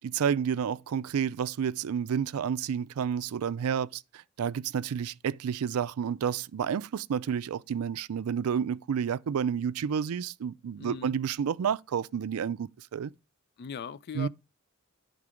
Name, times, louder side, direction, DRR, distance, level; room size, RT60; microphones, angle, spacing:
voice 1, 0.0-13.1 14.1-14.3, right 7 dB, 75° right, 0.4 m, -30 dB
voice 2, 10.8-11.1 13.6-14.3, left 7 dB, 50° left, 0.3 m, -39 dB
11.0 x 3.8 x 5.0 m
head